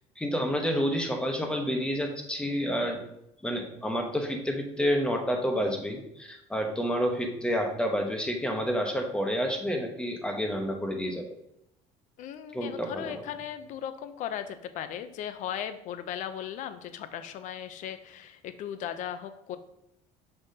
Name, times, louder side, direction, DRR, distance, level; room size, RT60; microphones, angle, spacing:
voice 1, 0.2-3.0 3.4-11.2 12.5-13.2, equal, 5° left, 3 dB, 1.1 m, -29 dB
voice 2, 12.2-19.6, left 9 dB, 60° left, 11 dB, 0.6 m, -37 dB
6.9 x 5.7 x 2.8 m, 0.80 s
cardioid pair, 120°, 14 cm